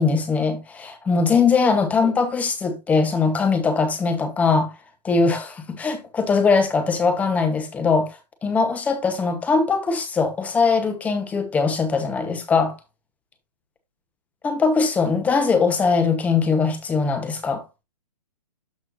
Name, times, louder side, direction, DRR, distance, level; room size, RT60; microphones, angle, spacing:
voice 1, 0.0-4.7 5.0-12.8 14.4-17.6, left 4 dB, 5° left, 1.0 m, -21 dB
12.5 x 4.4 x 2.6 m
hypercardioid pair, 165°, 21 cm